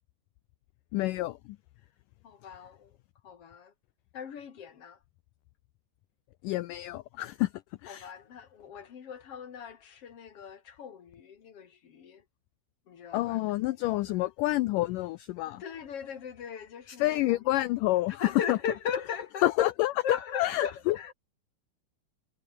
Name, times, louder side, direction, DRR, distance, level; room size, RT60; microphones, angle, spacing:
voice 1, 0.9-1.6 6.4-7.5 7.8-8.1 13.1-15.6 16.9-18.6 19.4-21.0, left 17 dB, 90° left, 1.8 m, -28 dB
voice 2, 2.2-3.0 3.2-3.7 4.1-5.0 7.9-12.3 12.9-13.4 15.5-17.4 18.1-19.7 20.0-21.1, left 7 dB, 45° left, 2.4 m, -38 dB
omnidirectional pair, 4.5 m